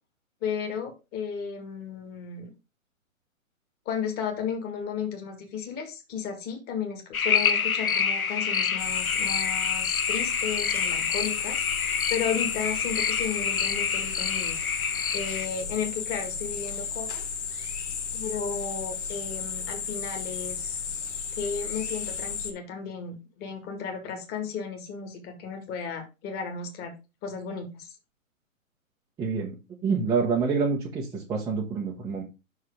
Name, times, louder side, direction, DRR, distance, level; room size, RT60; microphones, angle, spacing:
voice 1, 0.4-2.5 3.9-14.6 15.1-17.2 18.1-20.8 21.4-26.9 27.2-28.0, left 6 dB, 25° left, 4 dB, 1.8 m, -34 dB
sound 1, 7.1-15.5, left 6 dB, 90° left, 1.0 m, -27 dB
sound 2, 8.8-22.5, left 6 dB, 55° left, 1.7 m, -34 dB
voice 2, 29.2-29.5 29.8-32.2, right 5 dB, 10° right, -4 dB, 0.8 m, -27 dB
5.8 x 4.8 x 4.9 m, 0.27 s
hypercardioid pair, 135°, 41 cm